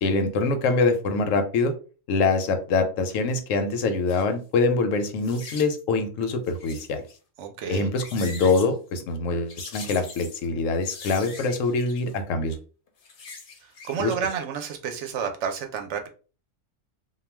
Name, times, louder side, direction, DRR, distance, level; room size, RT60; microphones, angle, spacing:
voice 1, 0.0-1.7 2.1-7.0 7.7-12.6 14.0-14.1, left 3 dB, 85° left, 0.9 m, -24 dB
sound 1, 4.1-4.3 5.2-5.8 6.5-7.1 7.8-8.7 9.5-10.5 10.8-12.2 12.9-14.0 14.3-14.4, left 4 dB, 55° left, 0.7 m, -41 dB
voice 2, 7.4-7.9 13.6-16.1, right 7 dB, 70° right, 0.8 m, -30 dB
2.3 x 2.2 x 3.2 m
omnidirectional pair, 1.3 m